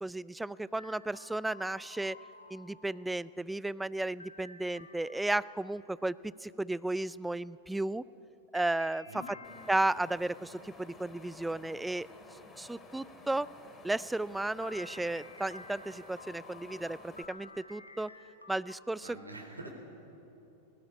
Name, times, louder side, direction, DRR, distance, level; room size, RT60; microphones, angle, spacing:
voice 1, 0.0-2.2 2.5-8.0 8.5-9.2 9.7-12.1 12.6-13.5 13.8-18.1 18.5-19.1, right 2 dB, 5° right, 19 dB, 0.4 m, -34 dB
sound 1, 0.8-3.2 4.2-5.8 8.5-10.3 14.6-18.8, left 2 dB, 85° left, 1.7 m, -52 dB
Wind, 9.4-17.2, left 3 dB, 20° left, 2.9 m, -53 dB
voice 2, 19.0-19.7, right 2 dB, 80° right, 3 dB, 4.0 m, -45 dB
20.5 x 18.0 x 9.8 m, 3.0 s
figure-of-eight pair, 90°, 0 cm